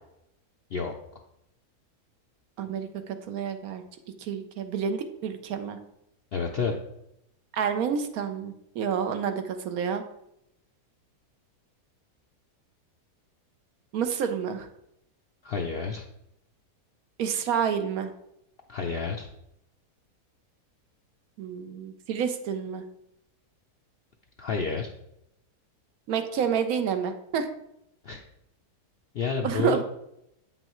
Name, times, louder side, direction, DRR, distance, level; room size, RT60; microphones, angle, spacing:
voice 1, 2.6-3.8 4.2-5.8 7.5-10.0 13.9-14.7 17.2-18.1 21.4-22.8 26.1-27.5 29.4-29.8, right 7 dB, 70° right, 7 dB, 1.1 m, -29 dB
voice 2, 6.3-6.7 15.4-16.0 18.7-19.3 24.4-24.9 28.0-28.2 29.1-29.8, left 5 dB, 85° left, 2 dB, 0.5 m, -29 dB
8.1 x 5.5 x 3.0 m, 0.81 s
omnidirectional pair, 1.7 m